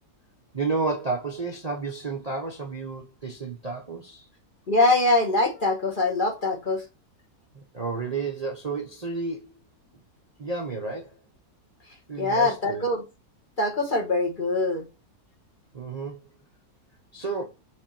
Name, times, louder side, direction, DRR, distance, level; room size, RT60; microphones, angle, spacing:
voice 1, 0.5-4.3 7.5-9.5 10.4-11.2 12.1-12.9 15.7-16.2 17.1-17.4, right 4 dB, 35° right, 0.7 m, -31 dB
voice 2, 4.7-6.8 12.2-13.0 13.6-14.9, left 2 dB, 35° left, 1.2 m, -23 dB
4.8 x 4.1 x 5.8 m
omnidirectional pair, 1.7 m